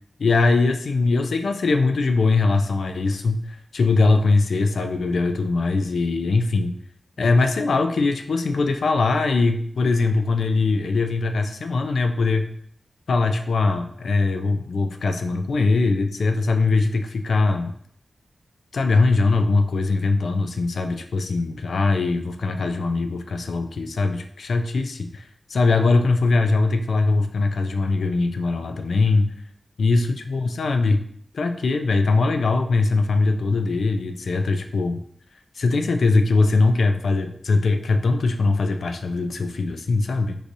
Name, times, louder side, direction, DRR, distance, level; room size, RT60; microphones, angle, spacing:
voice 1, 0.2-6.7 7.2-12.5 13.1-17.7 18.7-29.3 29.8-31.0 31.3-35.0 35.6-40.4, left 3 dB, 80° left, 6 dB, 0.3 m, -21 dB
4.6 x 2.6 x 2.6 m, 0.64 s
wide cardioid pair, 140°, 0 cm